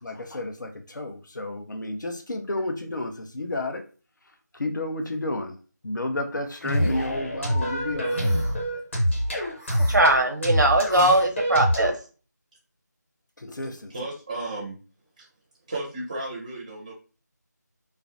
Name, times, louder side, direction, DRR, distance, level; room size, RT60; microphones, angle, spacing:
voice 1, 0.0-3.8 4.5-5.6 5.8-8.4 13.4-13.9, left 2 dB, 80° left, 4 dB, 0.6 m, -31 dB
sound 1, 6.6-7.0 8.1-8.6 9.6-10.0 10.9-11.2, left 1 dB, 20° left, 0.7 m, -34 dB
sound 2, 6.7-11.9, equal, 40° left, 1.0 m, -26 dB
voice 2, 9.3-11.9, right 1 dB, 75° right, 3 dB, 0.7 m, -21 dB
voice 3, 13.9-14.8 15.2-15.3 15.7-16.9, right 2 dB, 20° right, -5 dB, 0.5 m, -34 dB
2.4 x 2.0 x 2.6 m, 0.36 s
figure-of-eight pair, 170°, 10 cm